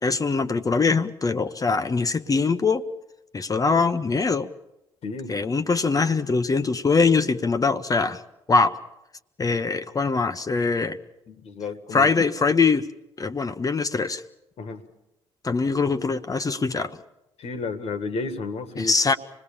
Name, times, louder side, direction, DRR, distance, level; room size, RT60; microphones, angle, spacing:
voice 1, 0.0-2.8 3.3-4.5 5.3-8.2 8.5-8.8 9.4-11.0 11.9-12.9 13.2-14.2 15.4-17.0 18.8-19.1, left 4 dB, 30° left, 10 dB, 0.8 m, -22 dB
voice 2, 5.0-5.3 11.3-12.1 14.6-14.8 17.4-18.9, left 4 dB, 55° left, 10 dB, 1.7 m, -32 dB
26.0 x 19.5 x 7.1 m, 0.94 s
hypercardioid pair, 55°, 12 cm